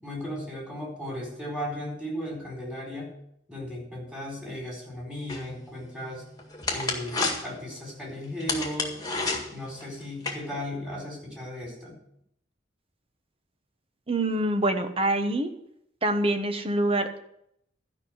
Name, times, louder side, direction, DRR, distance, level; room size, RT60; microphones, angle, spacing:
voice 1, 0.0-3.1 3.5-6.2 6.7-9.0 9.5-12.0, left 1 dB, 5° right, -2 dB, 4.4 m, -36 dB
sound 1, 5.3-10.3, left 3 dB, 20° left, 1.8 m, -32 dB
voice 2, 14.1-15.5 16.0-17.2, right 1 dB, 30° right, 7 dB, 1.1 m, -25 dB
13.0 x 5.7 x 7.9 m, 0.74 s
head